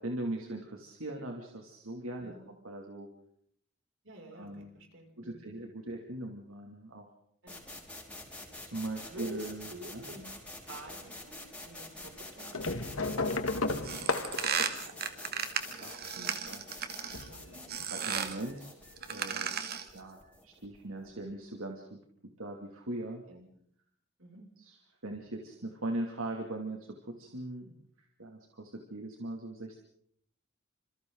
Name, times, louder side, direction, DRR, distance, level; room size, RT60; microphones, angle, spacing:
voice 1, 0.0-3.1 4.3-4.7 5.2-7.1 8.7-10.0 15.4-16.7 17.9-18.7 19.0-19.6 19.9-22.0 22.4-23.2 24.6-24.8 25.0-27.7 28.0-29.8, right 1 dB, 85° right, 1 dB, 2.7 m, -40 dB
voice 2, 2.2-2.5 4.0-5.6 7.4-7.6 9.0-10.2 10.6-14.3 17.3-17.6 18.0-18.3 23.3-23.5 24.2-24.5, right 1 dB, 65° right, 2 dB, 6.4 m, -50 dB
sound 1, 7.5-21.2, left 2 dB, 5° left, 4.8 m, -48 dB
sound 2, 12.5-15.8 17.0-17.9 19.0-19.1 19.4-19.5, left 3 dB, 80° left, 1.7 m, -34 dB
sound 3, 13.8-17.3 17.7-18.4 19.0-19.9, right 7 dB, 50° right, 2.1 m, -35 dB
29.0 x 27.0 x 4.0 m, 0.66 s
head